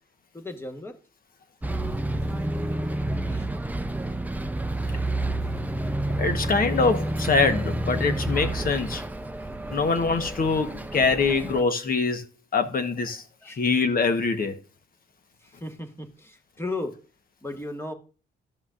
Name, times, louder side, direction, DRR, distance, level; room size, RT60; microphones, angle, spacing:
voice 1, 0.3-0.9 3.2-3.5 13.4-13.6 15.4-16.9 17.4-17.9, left 2 dB, 10° left, 1.5 m, -35 dB
Bus, 1.6-11.6, right 1 dB, 10° right, 0.6 m, -29 dB
voice 2, 6.2-9.0 9.7-12.3 12.5-14.6, left 4 dB, 45° left, 1.2 m, -24 dB
13.0 x 6.1 x 2.5 m
cardioid pair, 90°, 20 cm